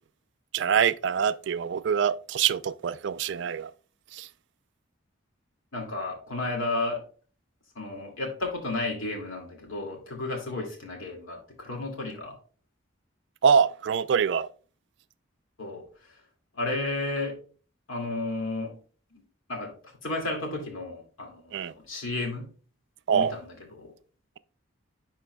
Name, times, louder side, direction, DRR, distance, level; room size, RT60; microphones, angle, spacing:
voice 1, 0.5-3.7 4.1-4.3 13.4-14.5 21.5-21.7 23.1-23.3, right 7 dB, 60° right, 0.3 m, -24 dB
voice 2, 5.7-7.0 7.8-12.4 15.6-16.2 16.5-17.4 17.9-18.8 19.1-19.2 19.5-19.7 20.0-22.5 23.1-23.9, left 2 dB, 80° left, 2.3 m, -33 dB
11.0 x 4.3 x 2.2 m
head